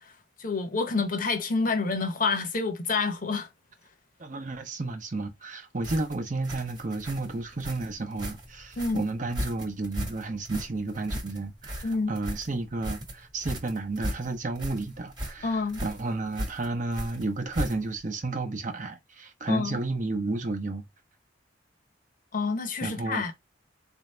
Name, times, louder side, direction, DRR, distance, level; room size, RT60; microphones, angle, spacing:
voice 1, 0.4-3.5 8.8-9.0 11.8-12.1 15.4-15.8 19.5-19.8 22.3-23.3, left 4 dB, 45° left, 0.8 m, -28 dB
voice 2, 4.2-20.8 22.8-23.2, right 2 dB, 45° right, 0.8 m, -32 dB
sound 1, 5.8-18.1, equal, 25° right, 1.2 m, -37 dB
4.0 x 2.7 x 3.2 m
head